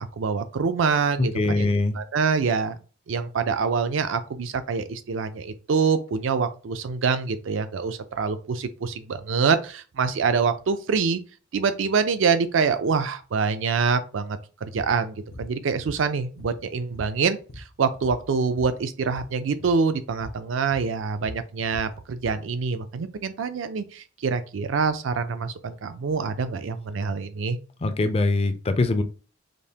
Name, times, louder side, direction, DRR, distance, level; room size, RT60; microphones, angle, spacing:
voice 1, 0.0-2.8 3.1-11.2 11.5-27.6, right 5 dB, 75° right, 0.4 m, -25 dB
voice 2, 1.2-2.0 27.8-29.0, left 2 dB, 30° left, 0.4 m, -23 dB
sound 1, 14.7-14.9 15.3-15.5 15.8-16.7 16.9-18.8 19.0-19.3 19.6-19.8 20.2-20.4 20.7-22.4, left 1 dB, 85° left, 0.7 m, -42 dB
5.1 x 2.0 x 2.8 m
head